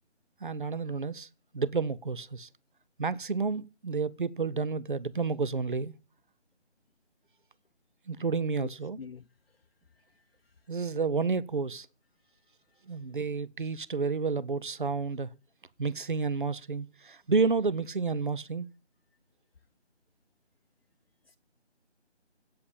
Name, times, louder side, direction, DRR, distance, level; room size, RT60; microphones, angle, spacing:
voice 1, 0.4-1.3 1.5-2.5 3.0-5.9 8.1-9.0 10.7-11.9 12.9-15.3 15.8-18.7, right 4 dB, 45° right, 0.5 m, -30 dB
voice 2, 9.0-9.6 9.9-10.5 12.3-12.8 21.3-21.4, left 5 dB, 60° left, 0.7 m, -49 dB
8.6 x 7.6 x 8.3 m
figure-of-eight pair, 170°, 35 cm